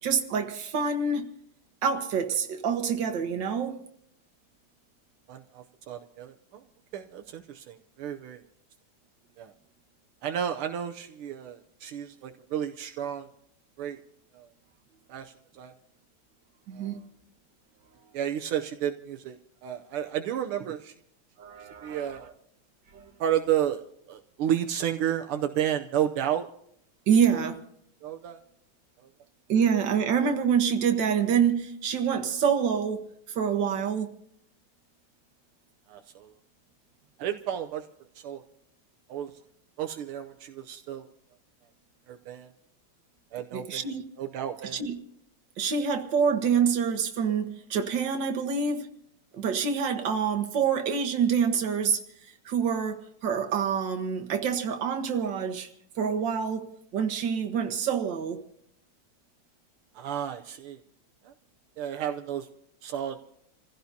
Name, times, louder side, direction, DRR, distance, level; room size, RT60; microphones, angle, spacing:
voice 1, 0.0-1.3 1.8-3.7 16.7-17.0 21.4-22.2 22.9-23.1 27.1-27.6 29.5-34.1 43.5-44.0 44.7-44.9 45.6-48.9 49.3-52.0 52.5-55.7 56.0-56.7 56.9-58.4, right 6 dB, 60° right, 1.9 m, -26 dB
voice 2, 5.3-6.6 6.9-8.4 9.4-9.5 10.2-13.3 13.8-14.0 14.3-14.5 15.1-15.7 16.7-17.0 18.1-20.9 21.6-22.3 23.2-26.5 27.4-27.5 28.0-28.4 29.0-29.1 35.9-36.3 37.2-37.9 38.1-38.4 39.1-39.3 39.8-41.1 42.1-42.5 43.3-43.9 44.2-44.8 59.9-60.8 61.2-61.3 61.8-62.5 62.8-63.2, right 10 dB, 80° right, 1.6 m, -32 dB
28.5 x 16.0 x 2.8 m
omnidirectional pair, 2.4 m